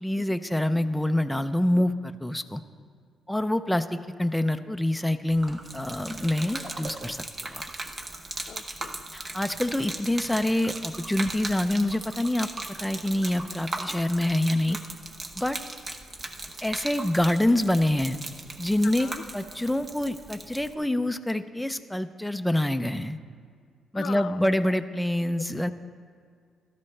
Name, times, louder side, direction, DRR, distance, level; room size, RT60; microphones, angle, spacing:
voice 1, 0.0-2.6 3.3-7.2 7.5-7.6 9.1-12.5 12.8-14.8 15.4-15.6 16.6-18.2 18.6-23.2 23.9-25.7, left 1 dB, 5° left, 9 dB, 0.5 m, -26 dB
Gurgling / Liquid, 5.3-20.7, right 2 dB, 30° right, 0.8 m, -38 dB
voice 2, 8.5-9.1 14.6-14.8 18.8-19.2 23.9-24.7, left 8 dB, 60° left, 15 dB, 0.3 m, -41 dB
15.0 x 12.5 x 3.3 m, 2.1 s
cardioid pair, 90°, 0 cm